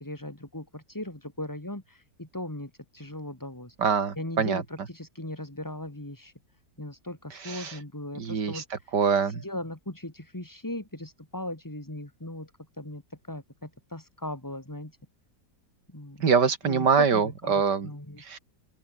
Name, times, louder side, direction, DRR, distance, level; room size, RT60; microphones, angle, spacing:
voice 1, 0.0-3.8 4.2-6.3 6.8-12.5 12.8-15.0 15.9-16.2 16.6-18.3, left 1 dB, 10° left, 2.6 m, -38 dB
voice 2, 3.8-4.6 7.4-7.8 8.2-8.6 8.9-9.4 16.2-17.9 18.3-18.4, right 6 dB, 75° right, 2.7 m, -24 dB
open air
omnidirectional pair, 1.9 m